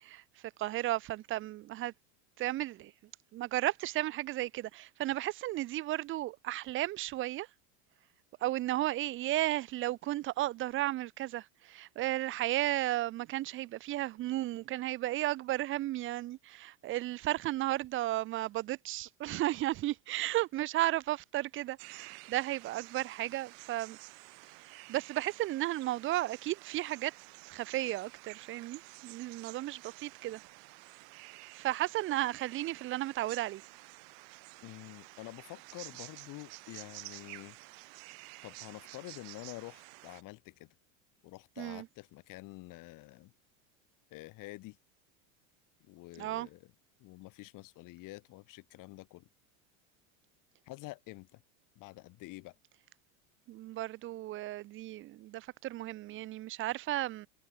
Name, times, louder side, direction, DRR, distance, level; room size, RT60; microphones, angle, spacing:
voice 1, 0.0-1.9 2.4-2.9 3.3-7.5 8.4-24.0 24.7-27.1 27.5-30.4 31.5-33.6 41.6-41.9 46.2-46.5 53.5-57.3, right 15 dB, 30° right, 0.5 m, -34 dB
sound 1, 21.8-40.2, right 40 dB or more, 65° right, 1.9 m, -51 dB
voice 2, 34.6-37.6 38.4-40.7 41.2-43.3 44.1-44.8 45.9-46.7 47.0-49.3 50.7-51.4 51.8-52.6, left 20 dB, 55° left, 2.3 m, -48 dB
supercardioid pair, 110°, 39 cm